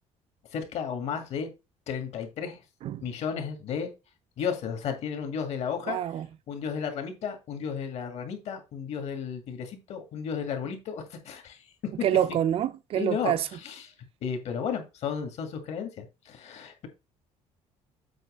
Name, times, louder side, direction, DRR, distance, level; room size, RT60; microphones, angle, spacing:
voice 1, 0.5-1.5 1.9-2.6 3.0-3.9 4.4-6.0 6.5-11.9 12.9-13.9 14.2-16.9, left 7 dB, 60° left, 2.1 m, -33 dB
voice 2, 5.9-6.3 12.0-13.5, right 10 dB, 50° right, 0.5 m, -26 dB
7.7 x 3.1 x 6.2 m
cardioid pair, 140°, 13 cm